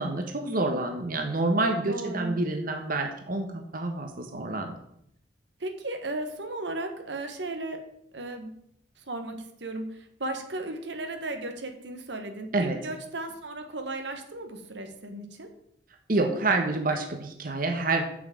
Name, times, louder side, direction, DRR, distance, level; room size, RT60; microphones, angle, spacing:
voice 1, 0.0-4.7 12.5-12.8 16.1-18.0, right 2 dB, 55° right, 4 dB, 1.2 m, -27 dB
voice 2, 1.8-2.3 5.6-7.8 8.1-8.5 9.0-15.5, right 2 dB, 80° right, 6 dB, 1.4 m, -35 dB
7.5 x 5.8 x 7.7 m, 0.72 s
head